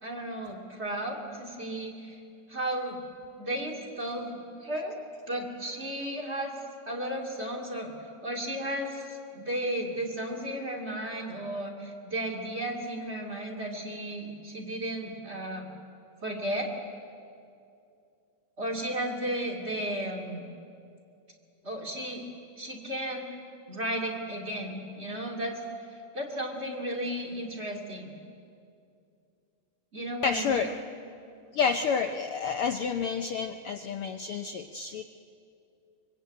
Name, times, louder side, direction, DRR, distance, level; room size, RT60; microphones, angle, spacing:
voice 1, 0.0-2.2 2.5-3.0 3.4-5.0 5.3-6.6 6.9-7.9 8.2-15.7 16.2-16.7 18.6-20.5 21.6-22.3 22.6-23.3 23.7-25.6 26.1-28.1 29.9-30.7, right 1 dB, 20° right, -1 dB, 2.7 m, -34 dB
voice 2, 30.2-30.7 31.5-35.0, left 6 dB, 85° left, 7 dB, 1.2 m, -29 dB
24.0 x 23.5 x 8.9 m, 2.5 s
omnidirectional pair, 3.5 m